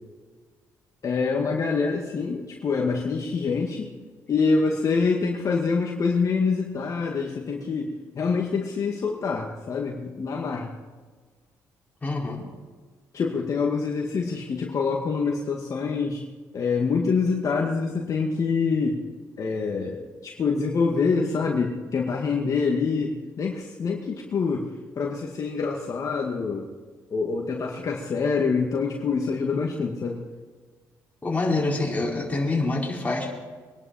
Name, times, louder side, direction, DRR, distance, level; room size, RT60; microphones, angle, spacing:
voice 1, 1.0-3.9 4.3-10.7 13.1-16.2 16.5-19.0 19.4-24.7 25.0-26.7 27.1-30.2, left 4 dB, 50° left, 0 dB, 2.1 m, -26 dB
voice 2, 12.0-12.4 31.2-33.3, left 2 dB, 20° left, -3 dB, 4.7 m, -26 dB
23.5 x 11.0 x 4.4 m, 1.4 s
supercardioid pair, 65°, 7 cm